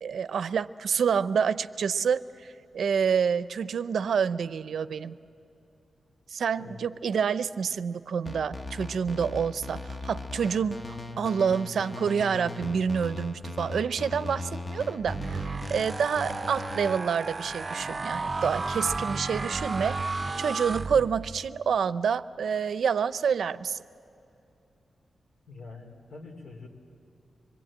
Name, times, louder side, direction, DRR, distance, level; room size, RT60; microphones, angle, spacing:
voice 1, 0.0-5.2 6.3-23.8, right 6 dB, 80° right, 15 dB, 0.5 m, -28 dB
sound 1, 8.3-17.0, left 2 dB, 30° left, 1.2 m, -38 dB
sound 2, 15.0-21.5, right 3 dB, 30° right, 0.6 m, -33 dB
voice 2, 25.5-26.7, left 3 dB, 75° left, 0 dB, 3.5 m, -44 dB
25.0 x 22.0 x 8.8 m, 2.7 s
wide cardioid pair, 135°, 0 cm